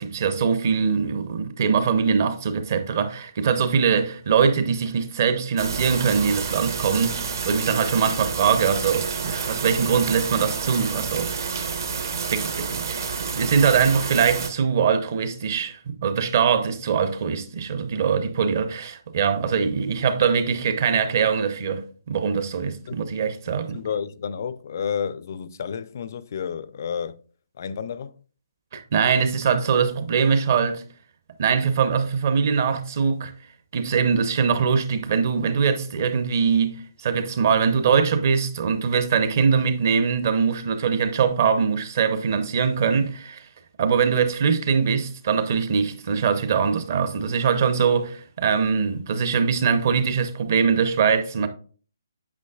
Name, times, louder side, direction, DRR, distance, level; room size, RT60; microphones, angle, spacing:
voice 1, 0.0-11.7 12.3-13.1 13.3-23.8 28.7-30.8 31.4-33.3 33.7-43.4 43.8-51.5, right 6 dB, 45° right, 0.8 m, -22 dB
sound 1, 5.6-14.5, right 5 dB, 60° right, 1.2 m, -29 dB
voice 2, 23.7-27.2 27.6-28.1, left 7 dB, 45° left, 0.4 m, -30 dB
8.3 x 6.1 x 2.4 m
hypercardioid pair, 160°, 2 cm